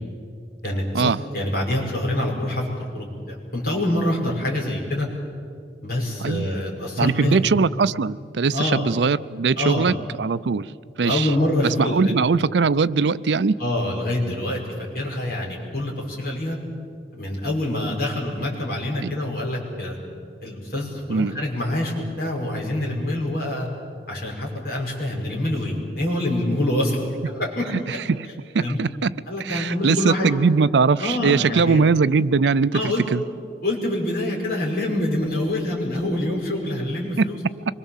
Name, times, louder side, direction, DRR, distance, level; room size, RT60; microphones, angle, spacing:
voice 1, 0.6-2.6 2.9-5.1 5.8-7.5 8.5-8.9 9.6-9.9 11.0-12.1 13.6-14.6 14.9-16.6 17.1-20.0 20.4-23.7 24.1-27.1 27.4-27.7 28.6-28.8 29.3-30.3 31.0-31.8 32.7-33.0 33.6-37.4, left 1 dB, 55° left, -2 dB, 5.6 m, -25 dB
voice 2, 6.2-6.5 7.0-10.7 11.0-11.3 11.8-13.6 19.0-19.1 21.1-21.3 27.9-28.3 28.5-29.1 29.4-33.2 37.2-37.3, right 4 dB, 75° right, 17 dB, 0.5 m, -21 dB
25.0 x 22.0 x 7.3 m, 2.2 s
head